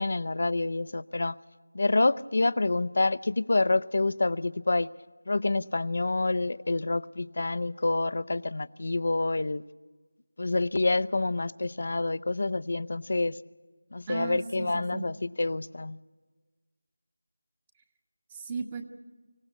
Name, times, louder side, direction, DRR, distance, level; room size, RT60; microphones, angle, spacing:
voice 1, 0.0-1.4 1.7-4.9 5.3-9.6 10.4-13.4 13.9-16.0, left 2 dB, 50° left, 16 dB, 0.6 m, -27 dB
voice 2, 14.1-15.1 18.3-18.8, right 4 dB, 20° right, 7 dB, 1.1 m, -36 dB
25.0 x 16.5 x 8.2 m, 1.3 s
figure-of-eight pair, 170°, 0 cm